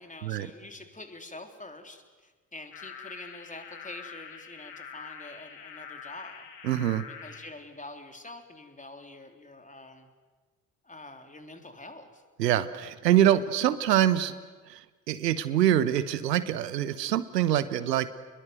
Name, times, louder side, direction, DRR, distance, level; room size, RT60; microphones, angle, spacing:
voice 1, 0.0-6.5 7.1-10.1 10.8-12.2, left 2 dB, 15° left, 5 dB, 3.6 m, -46 dB
sound 1, 2.7-7.5, left 6 dB, 75° left, 2.7 m, -45 dB
voice 2, 6.6-7.0 12.4-14.3 14.7-14.8 15.1-18.1, right 11 dB, 80° right, 15 dB, 1.1 m, -24 dB
29.5 x 21.5 x 7.9 m, 1.4 s
figure-of-eight pair, 45°, 49 cm